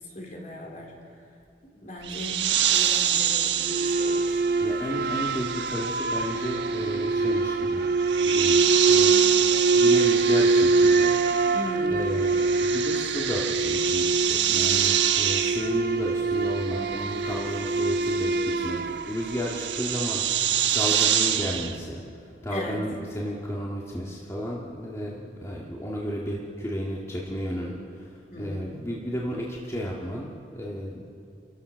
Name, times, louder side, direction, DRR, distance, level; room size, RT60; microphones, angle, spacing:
voice 1, 0.1-1.0 1.8-4.4 11.5-12.1 22.5-22.8 28.3-28.7, left 1 dB, 45° left, -1 dB, 4.1 m, -37 dB
sound 1, 2.0-11.8 12.0-21.7, right 9 dB, 85° right, 1.3 m, -27 dB
sound 2, 3.6-20.2, right 3 dB, 55° right, 0.7 m, -24 dB
voice 2, 4.6-7.8 8.2-9.3 9.7-11.1 11.9-22.0 22.4-31.0, equal, 15° left, -4 dB, 2.1 m, -33 dB
29.5 x 15.0 x 6.4 m, 2.3 s
head